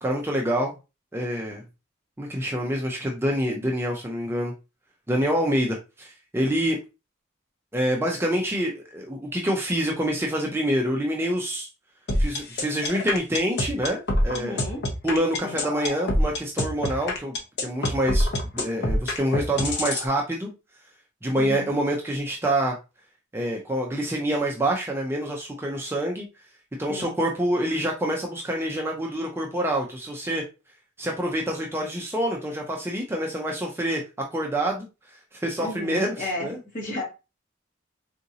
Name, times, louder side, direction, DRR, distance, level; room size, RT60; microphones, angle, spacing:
voice 1, 0.0-0.7 1.1-1.6 2.2-4.5 5.1-6.8 7.7-11.7 12.2-14.6 15.0-17.4 17.6-20.5 21.2-22.8 23.3-26.2 26.8-30.4 31.0-34.0 34.3-34.9 35.3-36.6, right 1 dB, 10° right, 0.4 m, -26 dB
sound 1, 12.1-20.1, left 1 dB, 55° left, 0.8 m, -25 dB
voice 2, 14.3-14.9 15.4-15.6 21.3-21.7 26.9-27.2 35.6-37.0, left 2 dB, 40° left, 1.6 m, -34 dB
3.8 x 2.5 x 2.7 m
head